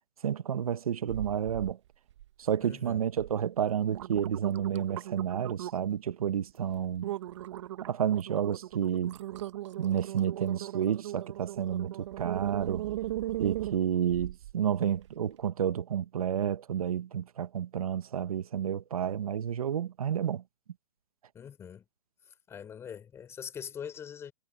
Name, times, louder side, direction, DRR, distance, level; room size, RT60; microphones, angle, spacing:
voice 1, 0.2-1.8 2.4-7.1 7.8-9.2 9.8-12.9 13.4-20.4, right 9 dB, 80° right, 1.2 m, -30 dB
sound 1, 1.1-1.7 2.1-2.6 3.2-3.3 3.7-6.0 6.4-6.6 7.0-14.5 15.0-15.1, right 14 dB, 55° right, 1.4 m, -38 dB
voice 2, 2.6-3.1 21.3-21.8 22.5-24.3, left 8 dB, 15° left, 4.8 m, -43 dB
hypercardioid pair, 150°, 18 cm